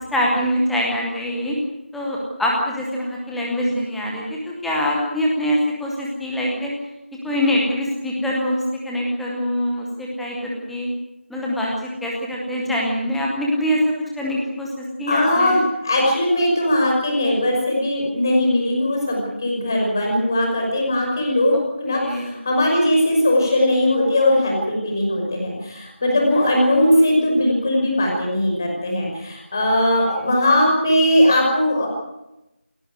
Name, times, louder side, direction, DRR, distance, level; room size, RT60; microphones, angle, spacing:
voice 1, 0.1-1.6 1.9-6.7 7.2-10.9 11.3-11.7 12.0-15.6 21.9-22.3 26.0-26.1, equal, ahead, -3 dB, 0.8 m, -24 dB
voice 2, 15.1-31.9, left 1 dB, 20° left, 0 dB, 5.8 m, -19 dB
28.5 x 13.0 x 9.2 m, 0.93 s
figure-of-eight pair, 175°, 7 cm